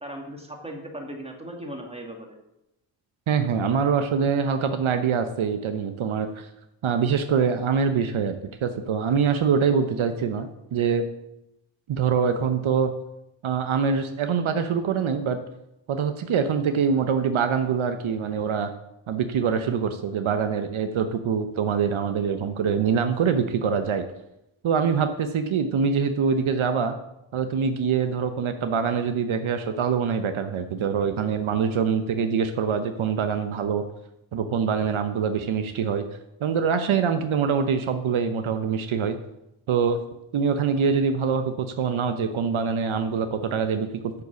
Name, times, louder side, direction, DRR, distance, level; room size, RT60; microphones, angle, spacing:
voice 1, 0.0-2.4, right 1 dB, 10° right, 2 dB, 2.1 m, -37 dB
voice 2, 3.3-6.5 6.8-8.4 8.6-11.0 11.9-12.9 13.4-15.4 15.9-18.7 19.1-24.0 24.6-26.9 27.3-33.8 34.3-36.1 36.4-39.2 39.7-40.0 40.3-43.9, right 6 dB, 75° right, 8 dB, 0.8 m, -24 dB
6.9 x 6.7 x 6.9 m, 0.87 s
cardioid pair, 55°, 49 cm